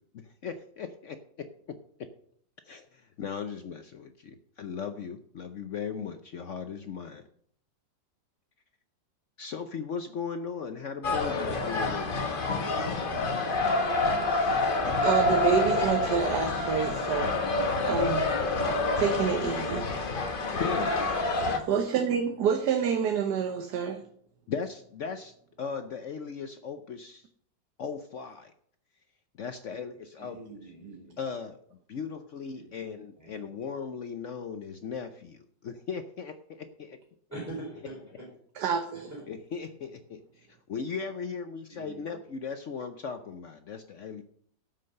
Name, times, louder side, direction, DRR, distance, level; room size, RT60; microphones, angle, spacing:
voice 1, 0.4-1.2 2.7-2.8 3.2-7.2 9.4-12.3 20.6-21.0 24.5-25.3 25.6-27.2 27.8-28.5 29.4-30.4 31.2-31.6 31.9-35.4 35.6-36.3 36.8-37.0 39.3-40.0 40.7-44.2, left 6 dB, 60° left, 0.8 m, -37 dB
sound 1, 11.0-21.6, left 2 dB, 35° left, 1.1 m, -27 dB
voice 2, 14.8-17.4 17.8-18.3 19.0-19.9 21.7-24.0 38.6-39.1, right 7 dB, 70° right, 1.5 m, -28 dB
voice 3, 30.2-31.2 32.5-32.8 33.2-33.6 37.3-38.3 38.9-39.2 41.7-42.2, right 2 dB, 10° right, 4.0 m, -43 dB
12.5 x 5.9 x 6.6 m
omnidirectional pair, 1.9 m